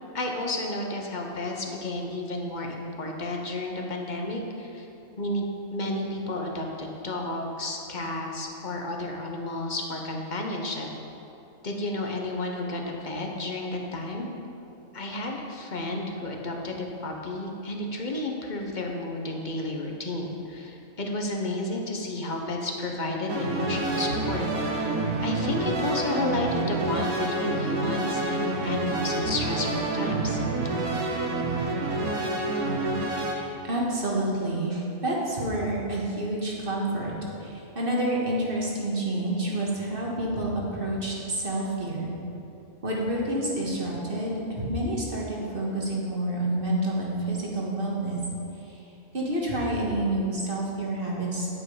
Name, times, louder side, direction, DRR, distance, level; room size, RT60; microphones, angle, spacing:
voice 1, 0.1-4.9 5.2-10.9 11.6-14.3 14.9-24.9 25.2-30.4, left 2 dB, 35° left, 1 dB, 1.1 m, -32 dB
sound 1, 23.3-33.4, right 2 dB, 85° right, 1.5 m, -28 dB
voice 2, 33.3-37.1 37.4-42.1 42.8-48.2 48.7-48.8 49.1-51.5, right 1 dB, 40° right, -3 dB, 1.9 m, -28 dB
9.4 x 8.7 x 5.0 m, 2.8 s
omnidirectional pair, 1.5 m